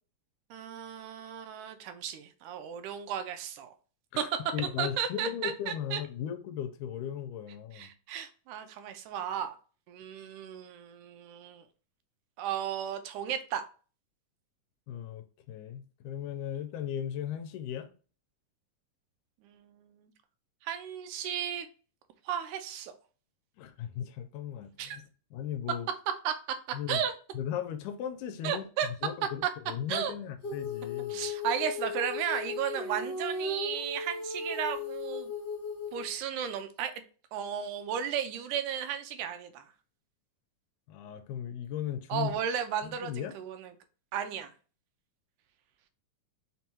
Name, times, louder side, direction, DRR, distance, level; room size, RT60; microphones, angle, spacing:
voice 1, 0.5-3.8 4.2-6.0 7.7-9.6 9.9-11.6 12.4-13.6 19.4-20.1 20.6-21.7 22.3-22.9 24.8-25.0 26.2-27.1 28.4-28.9 29.9-30.1 31.1-35.3 35.9-36.9 37.3-39.6 42.1-43.8 44.1-44.5, right 8 dB, 80° right, 2.0 m, -34 dB
voice 2, 4.1-7.9 14.9-17.9 23.6-25.0 25.3-25.9 26.7-27.0 27.3-28.6 29.0-31.3 40.9-42.4 42.8-43.4, left 9 dB, 80° left, 2.0 m, -37 dB
Female singing, 30.4-36.1, left 3 dB, 55° left, 0.7 m, -36 dB
5.4 x 2.2 x 2.9 m
omnidirectional pair, 3.6 m